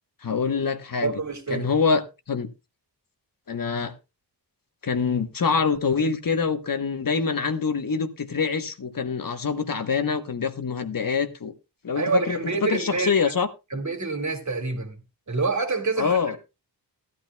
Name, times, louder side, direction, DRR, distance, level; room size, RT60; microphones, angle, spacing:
voice 1, 0.2-1.1 1.5-2.5 3.5-3.9 4.8-11.5 11.8-13.5 16.0-16.4, left 5 dB, 50° left, 1.2 m, -25 dB
voice 2, 1.0-1.7 11.9-13.1 13.7-15.0 15.3-16.4, right 3 dB, 40° right, 2.2 m, -27 dB
16.0 x 12.0 x 2.3 m
wide cardioid pair, 130°, 43 cm